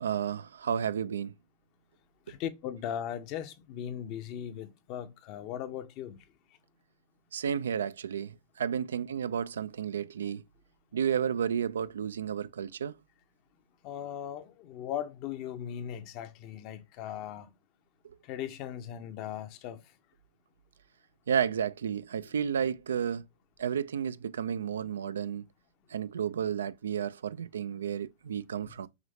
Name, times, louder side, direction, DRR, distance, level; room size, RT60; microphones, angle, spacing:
voice 1, 0.0-1.3 7.3-10.4 10.9-12.9 21.3-23.2 23.6-25.5 25.9-28.9, right 8 dB, 85° right, 0.3 m, -32 dB
voice 2, 2.3-6.2 13.8-17.5 18.2-19.8, left 10 dB, 45° left, 0.7 m, -38 dB
5.0 x 3.1 x 2.7 m
hypercardioid pair, 110°, 0 cm